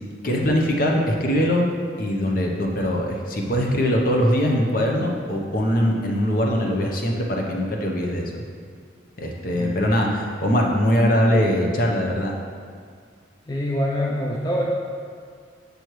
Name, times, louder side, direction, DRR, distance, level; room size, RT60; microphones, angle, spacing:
voice 1, 0.2-1.7 2.0-8.3 9.2-12.4, equal, 45° left, 0 dB, 0.8 m, -22 dB
voice 2, 9.5-9.9 13.5-14.7, equal, 20° left, -3 dB, 0.5 m, -25 dB
6.8 x 6.3 x 3.1 m, 2.1 s
head